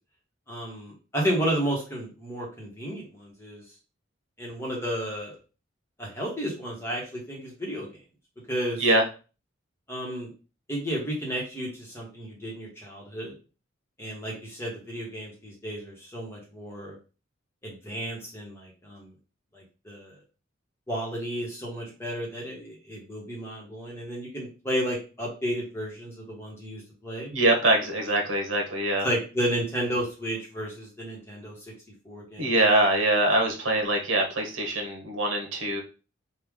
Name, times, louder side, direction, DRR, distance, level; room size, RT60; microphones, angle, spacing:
voice 1, 0.5-3.6 4.4-5.3 6.0-7.9 8.5-8.8 9.9-10.3 10.7-13.3 14.0-16.9 17.6-19.1 19.5-20.2 20.9-27.3 29.0-31.5 32.0-32.5, equal, 10° left, -3 dB, 1.1 m, -32 dB
voice 2, 27.3-29.1 32.4-35.8, right 1 dB, 75° right, 2 dB, 1.1 m, -23 dB
3.2 x 2.4 x 3.6 m, 0.34 s
head